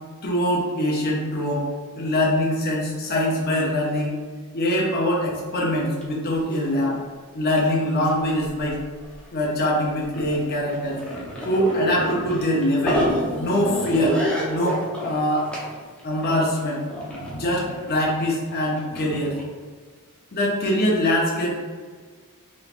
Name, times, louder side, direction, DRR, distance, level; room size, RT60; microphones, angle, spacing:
voice 1, 0.2-1.7 2.0-4.2 4.5-7.0 7.3-8.8 9.3-11.0 11.4-13.1 13.4-14.2 14.5-15.5 16.0-16.8 17.1-19.4 20.3-21.5, left 1 dB, 45° left, -3 dB, 0.6 m, -23 dB
sound 1, 6.0-6.1 6.3-7.0 7.5-7.8 8.1-9.2 9.8-19.4, equal, 5° left, 0.5 m, -30 dB
3.4 x 3.0 x 2.4 m, 1.5 s
head